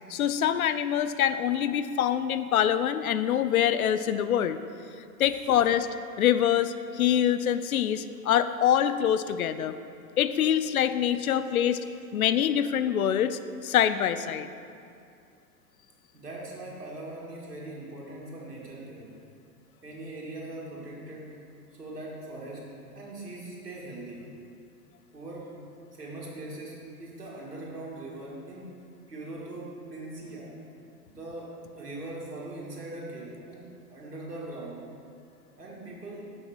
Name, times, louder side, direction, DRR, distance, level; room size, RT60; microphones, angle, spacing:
voice 1, 0.1-4.6 5.2-5.9 6.2-9.7 10.2-11.8 12.1-14.5, left 10 dB, 65° left, 12 dB, 0.6 m, -25 dB
voice 2, 16.1-19.1 19.8-21.3 21.8-22.6 22.9-24.3 25.1-25.5 25.9-28.7 29.1-30.5 31.1-34.8 35.6-36.3, right 2 dB, 80° right, -4 dB, 2.3 m, -41 dB
7.0 x 6.6 x 6.2 m, 2.4 s
figure-of-eight pair, 100°, 47 cm